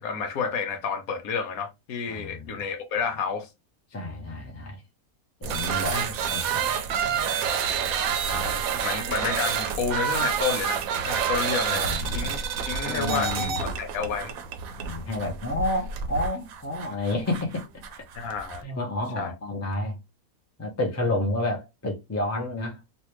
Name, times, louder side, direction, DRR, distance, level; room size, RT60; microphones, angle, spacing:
voice 1, 0.0-3.5 5.9-6.1 8.2-14.3 18.1-18.6 19.2-19.3, left 5 dB, 75° left, 1.2 m, -30 dB
voice 2, 2.1-2.6 3.9-4.8 5.4-7.4 8.3-8.5 11.7-12.2 12.9-13.7 14.8-17.6 18.6-20.0 20.6-22.8, left 1 dB, 15° left, 0.6 m, -30 dB
sound 1, 5.4-18.6, right 7 dB, 70° right, 1.0 m, -28 dB
3.3 x 2.5 x 3.0 m
omnidirectional pair, 1.6 m